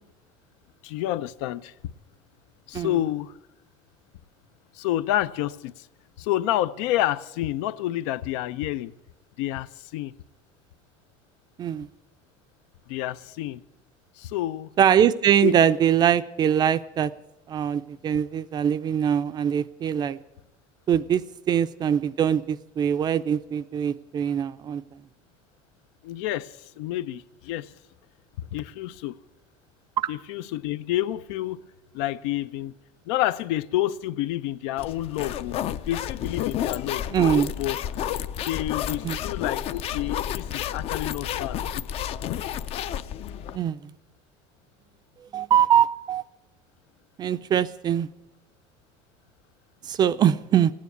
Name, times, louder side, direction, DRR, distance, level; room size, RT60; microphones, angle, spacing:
voice 1, 0.8-1.9 2.7-3.4 4.7-5.9 6.2-8.9 9.4-10.1 12.9-13.6 14.2-14.7 15.4-15.6 26.0-27.7 28.4-29.1 30.1-31.6 31.9-32.7 33.1-35.6 35.9-37.0 37.6-37.8 38.4-41.9, left 14 dB, 85° left, 0.6 m, -29 dB
voice 2, 14.8-17.1 17.5-20.2 20.9-24.8 37.1-37.5 39.0-39.2 43.5-43.9 45.3-46.2 47.2-48.1 49.8-50.7, right 9 dB, 30° right, 0.4 m, -22 dB
sound 1, 34.8-43.6, left 10 dB, 40° left, 0.5 m, -31 dB
15.5 x 9.5 x 8.3 m
cardioid pair, 155°, 15 cm